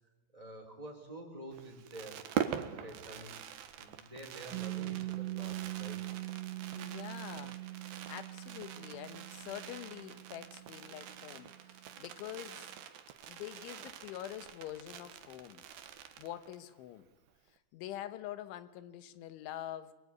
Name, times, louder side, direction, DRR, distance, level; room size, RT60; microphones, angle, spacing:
voice 1, 0.3-2.2 2.5-3.3 3.8-6.0, right 1 dB, 5° right, 0 dB, 5.0 m, -48 dB
Fireworks, 1.5-16.7 17.0-17.1 17.3-17.6, right 10 dB, 65° right, 2.8 m, -44 dB
Piano, 4.5-11.8, right 18 dB, 85° right, 4.5 m, -42 dB
voice 2, 6.7-12.7 13.3-15.6 16.2-17.1 17.5-19.9, left 12 dB, 80° left, 13 dB, 3.5 m, -45 dB
25.5 x 23.0 x 9.7 m, 1.2 s
omnidirectional pair, 5.6 m